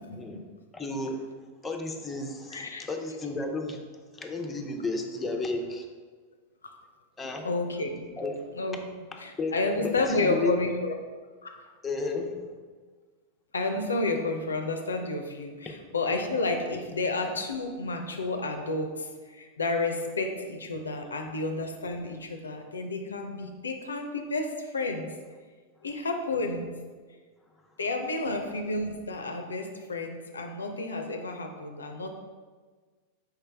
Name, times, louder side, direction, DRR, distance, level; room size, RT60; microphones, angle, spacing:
voice 1, 0.7-1.2 1.6-3.8 4.1-5.9 7.2-7.5 8.2-8.5 9.4-10.6 11.8-12.4 15.7-15.8, left 2 dB, 15° left, 2 dB, 0.6 m, -33 dB
voice 2, 2.5-2.9 7.4-8.0 8.5-8.8 9.2-10.9 11.4-11.6 13.5-25.0 25.8-26.7 27.8-32.1, left 2 dB, 85° left, 4 dB, 0.4 m, -31 dB
4.6 x 3.2 x 3.4 m, 1.5 s
hypercardioid pair, 95°, 0 cm